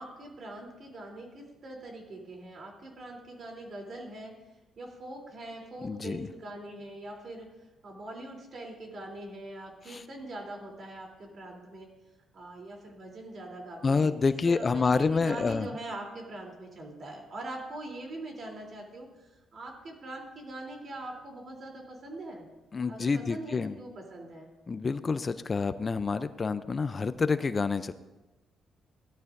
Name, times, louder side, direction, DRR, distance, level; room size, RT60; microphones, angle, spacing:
voice 1, 0.0-4.3 4.7-11.9 12.3-22.4 22.9-24.5, right 2 dB, 50° right, 0 dB, 3.3 m, -43 dB
voice 2, 5.8-6.3 9.9-10.0 13.8-15.7 22.7-23.7 24.7-27.9, left 4 dB, 35° left, 13 dB, 0.5 m, -28 dB
17.0 x 12.0 x 2.6 m, 1.1 s
cardioid pair, 90°, 0 cm